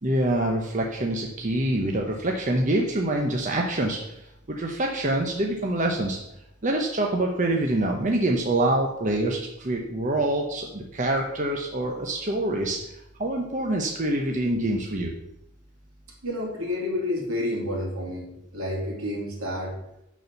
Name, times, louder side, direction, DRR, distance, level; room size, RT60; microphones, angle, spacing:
voice 1, 0.0-4.2 4.5-6.2 6.6-12.8 13.2-15.1, right 1 dB, 35° right, 1 dB, 0.8 m, -25 dB
voice 2, 16.2-19.7, left 1 dB, 80° right, -2 dB, 3.0 m, -30 dB
6.7 x 6.3 x 7.0 m, 0.85 s
head